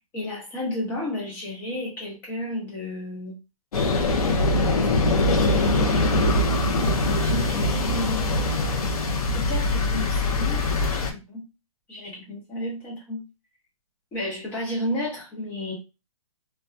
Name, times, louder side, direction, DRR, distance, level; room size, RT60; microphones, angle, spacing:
voice 1, 0.1-3.4 7.2-8.4 9.3-11.4 11.9-13.2 14.1-15.7, left 1 dB, 10° left, -4 dB, 0.7 m, -32 dB
sound 1, 3.7-11.1, left 2 dB, 85° left, 0.7 m, -22 dB
2.7 x 2.2 x 2.2 m, 0.26 s
hypercardioid pair, 165°, 19 cm